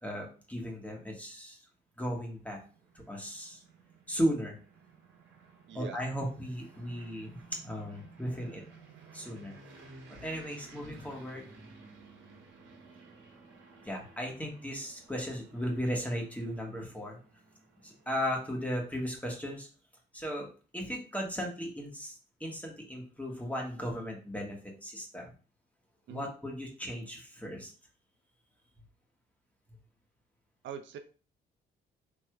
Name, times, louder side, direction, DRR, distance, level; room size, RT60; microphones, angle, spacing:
voice 1, 0.0-1.6 2.0-2.6 3.1-3.6 4.1-4.6 5.7-7.4 7.6-8.6 9.1-9.5 10.1-11.4 13.8-17.2 17.8-19.7 20.1-20.5 20.7-25.3 26.1-27.7, equal, 5° left, 0 dB, 1.3 m, -36 dB
sound 1, 2.2-19.2, right 3 dB, 85° right, 1.4 m, -55 dB
voice 2, 5.7-6.0 26.1-26.3 30.6-31.0, right 7 dB, 70° right, 9 dB, 0.5 m, -42 dB
4.7 x 3.1 x 2.3 m, 0.38 s
cardioid pair, 90°, 20 cm